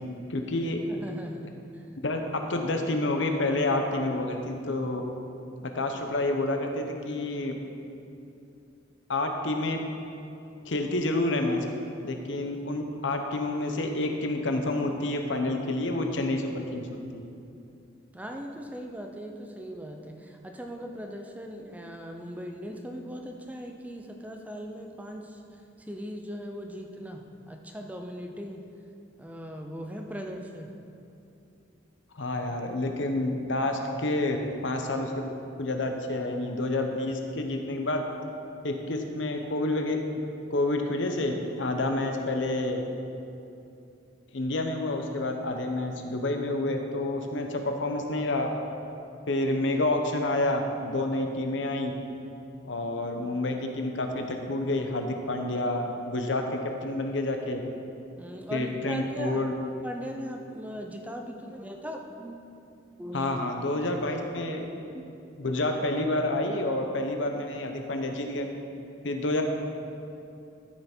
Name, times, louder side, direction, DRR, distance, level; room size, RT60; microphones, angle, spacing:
voice 1, 0.3-0.8 2.0-5.0 5.6-7.5 9.1-9.8 10.7-11.6 12.0-16.9 17.1-17.3 32.1-34.4 34.6-35.3 35.6-38.0 38.6-40.0 40.5-42.8 44.3-48.5 49.3-51.9 52.6-57.6 58.5-59.5 63.1-64.6 65.4-68.5 69.0-69.4, left 2 dB, 75° left, 4 dB, 0.9 m, -29 dB
voice 2, 0.9-1.8 18.1-25.4 25.8-28.7 29.2-30.7 58.2-59.4 59.8-62.4 63.0-63.3 64.4-65.1, equal, 10° right, 3 dB, 0.6 m, -39 dB
12.5 x 5.7 x 4.5 m, 2.7 s
head